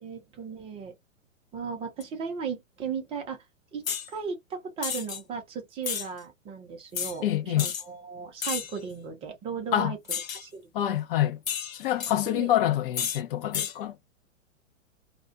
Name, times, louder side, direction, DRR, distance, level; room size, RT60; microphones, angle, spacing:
voice 1, 0.0-0.9 1.5-3.5 3.7-10.0 10.4-10.9 12.3-12.5, right 6 dB, 15° right, 0.5 m, -36 dB
sound 1, 3.9-4.1 4.8-5.2 5.8-6.1 7.0-7.2 7.6-7.8 8.4-8.8 10.1-10.5 11.5-12.1 12.9-13.2 13.5-13.7, left 8 dB, 85° left, 0.6 m, -31 dB
voice 2, 7.2-7.7 9.7-9.9 10.7-11.4 11.7-14.0, left 12 dB, 45° left, 0.6 m, -26 dB
2.4 x 2.1 x 2.5 m
figure-of-eight pair, 110°, 40 cm